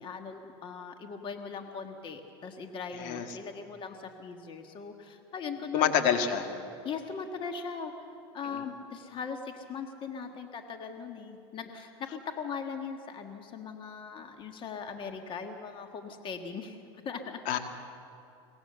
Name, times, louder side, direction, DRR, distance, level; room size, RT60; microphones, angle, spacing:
voice 1, 0.0-5.9 6.8-7.9 8.3-16.8 17.0-17.4, left 5 dB, 35° left, 6 dB, 1.6 m, -39 dB
voice 2, 5.7-6.5 8.5-8.6 17.5-17.6, left 8 dB, 60° left, 6 dB, 1.8 m, -26 dB
23.5 x 19.0 x 6.9 m, 2.6 s
supercardioid pair, 115°, 15 cm